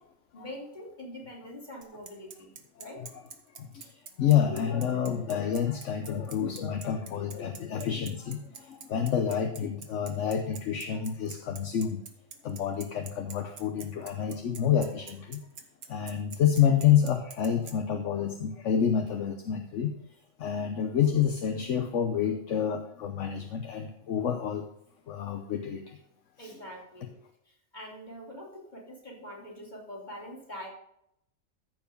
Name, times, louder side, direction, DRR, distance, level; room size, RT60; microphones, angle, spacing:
voice 1, 0.3-3.1 26.4-27.1 27.5-30.7, equal, 35° left, -3 dB, 3.1 m, -44 dB
Bicycle, 1.8-17.7, right 6 dB, 65° right, 1.4 m, -45 dB
voice 2, 2.8-3.1 3.5-12.0 12.4-15.4 15.9-19.9 20.4-24.7 25.1-26.0 26.4-26.5, left 8 dB, 65° left, 6 dB, 1.1 m, -28 dB
14.0 x 4.8 x 5.2 m, 0.76 s
omnidirectional pair, 1.4 m